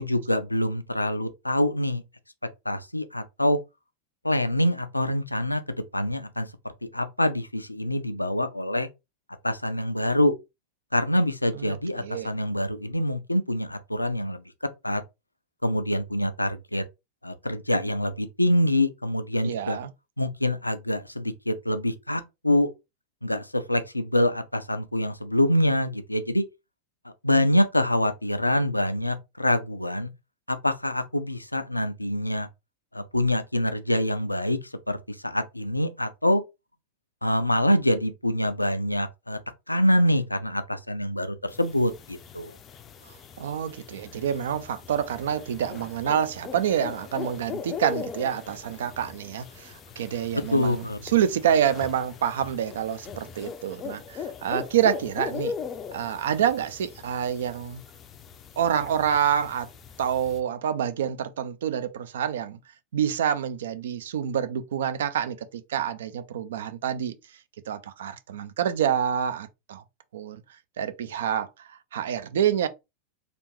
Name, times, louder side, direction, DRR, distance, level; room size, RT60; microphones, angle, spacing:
voice 1, 0.0-2.0 2.7-3.6 4.2-6.5 6.8-8.9 9.4-10.3 10.9-14.4 14.8-15.0 15.6-16.8 17.2-19.8 20.2-22.7 23.2-26.4 27.0-30.1 30.5-32.5 32.9-36.4 37.2-39.4 39.7-42.6 50.3-51.0, left 1 dB, 85° left, 0.4 m, -25 dB
voice 2, 11.6-12.3 19.4-19.9 43.4-50.8 51.1-55.5 55.9-57.8 58.6-59.7 60.0-62.6 62.9-67.1 67.7-69.8 70.1-70.4 70.8-71.5 71.9-72.7, right 9 dB, 60° right, 0.4 m, -27 dB
sound 1, 41.5-60.4, left 6 dB, 25° left, 0.4 m, -40 dB
3.4 x 2.5 x 3.0 m
figure-of-eight pair, 90°, 0 cm